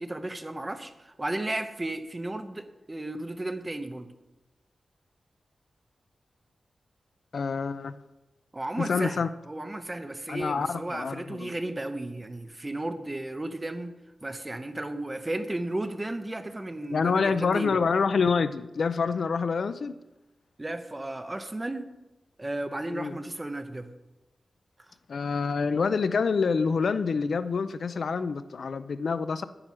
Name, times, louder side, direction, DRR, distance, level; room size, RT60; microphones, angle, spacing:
voice 1, 0.0-4.1 8.5-13.9 14.2-17.8 20.6-21.9 22.4-23.9, right 1 dB, 20° right, 8 dB, 0.8 m, -34 dB
voice 2, 7.3-7.9 8.8-9.3 10.3-11.5 16.9-19.9 22.9-23.2 25.1-29.4, left 5 dB, 65° left, 13 dB, 0.5 m, -27 dB
9.7 x 8.9 x 6.2 m, 1.0 s
wide cardioid pair, 155°, 0 cm